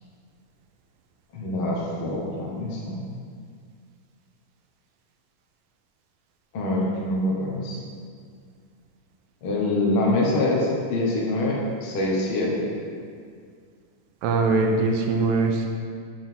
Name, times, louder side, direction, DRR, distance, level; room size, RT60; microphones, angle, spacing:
voice 1, 1.3-3.0 6.5-7.8 9.4-12.7, left 2 dB, 55° left, -3 dB, 1.5 m, -25 dB
voice 2, 14.2-15.7, right 3 dB, 85° right, 3 dB, 2.6 m, -22 dB
7.4 x 5.6 x 6.0 m, 2.1 s
omnidirectional pair, 4.0 m